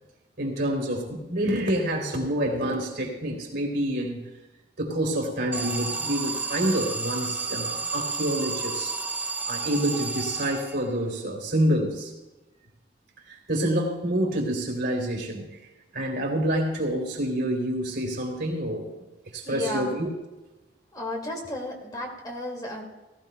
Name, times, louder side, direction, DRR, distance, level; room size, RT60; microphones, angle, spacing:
voice 1, 0.4-4.2 4.8-9.0 9.4-12.1 13.3-15.5 15.9-18.9 19.3-20.1, right 1 dB, 60° right, 1 dB, 3.3 m, -27 dB
Alarm, 5.5-11.1, right 4 dB, 10° right, 0.6 m, -31 dB
voice 2, 19.4-20.0 20.9-22.9, left 1 dB, 20° left, 0 dB, 2.2 m, -33 dB
19.0 x 15.0 x 2.3 m, 1.1 s
head